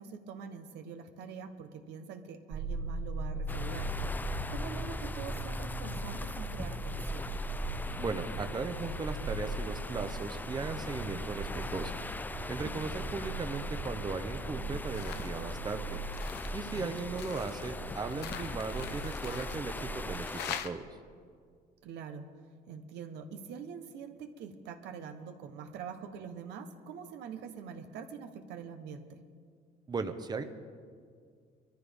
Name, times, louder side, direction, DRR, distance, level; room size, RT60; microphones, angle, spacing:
voice 1, 0.0-3.9 4.5-7.3 12.6-12.9 16.7-16.9 21.8-22.3 22.7-29.2, right 6 dB, 85° right, 6 dB, 1.1 m, -44 dB
sound 1, 2.5-20.2, right 2 dB, 55° right, 2.5 m, -40 dB
sound 2, 3.5-20.6, left 2 dB, 10° left, 0.4 m, -41 dB
voice 2, 8.0-11.9 12.5-16.0 16.5-20.9 29.9-30.4, right 4 dB, 25° right, 8 dB, 0.9 m, -37 dB
sound 3, 14.9-15.4 15.7-20.7, left 10 dB, 80° left, 0.8 m, -44 dB
22.5 x 14.0 x 3.6 m, 2.1 s
cardioid pair, 110°, 17 cm